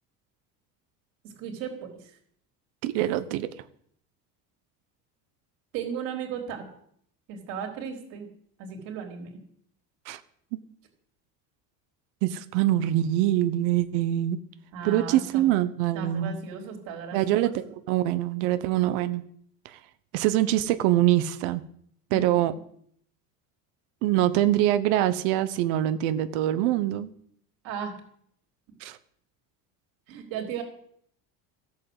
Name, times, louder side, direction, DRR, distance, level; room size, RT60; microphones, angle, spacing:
voice 1, 1.4-1.9 5.7-6.6 7.3-8.3 8.6-9.4 14.7-15.4 15.9-17.5 22.1-22.4 27.6-27.9 30.1-30.6, right 7 dB, 60° right, 3 dB, 4.0 m, -35 dB
voice 2, 2.8-3.5 10.1-10.2 10.5-10.6 12.2-14.4 14.8-16.4 17.1-19.2 19.6-19.8 20.1-21.6 22.1-22.5 24.0-27.1 28.8-29.0, right 13 dB, 75° right, 12 dB, 1.1 m, -24 dB
15.0 x 8.5 x 8.1 m, 0.64 s
cardioid pair, 180°, 38 cm